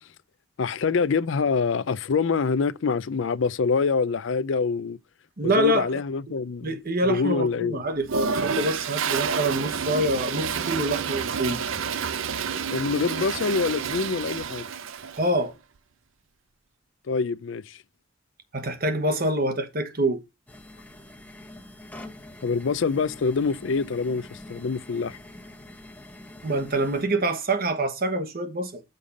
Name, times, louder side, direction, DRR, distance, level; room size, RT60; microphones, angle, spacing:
voice 1, 0.6-5.0 5.4-6.7 7.1-7.8 12.7-14.7 17.1-17.8 22.4-25.2, left 5 dB, 65° left, 0.4 m, -25 dB
voice 2, 5.4-6.0 6.3-6.4 6.6-11.6 15.2-15.5 18.5-20.2 26.4-28.8, right 1 dB, 45° right, 1.2 m, -26 dB
Toilet flush, 8.0-15.3, right 6 dB, 75° right, 0.6 m, -29 dB
sound 1, 20.5-27.0, left 1 dB, 10° left, 0.9 m, -45 dB
6.7 x 5.5 x 5.1 m
head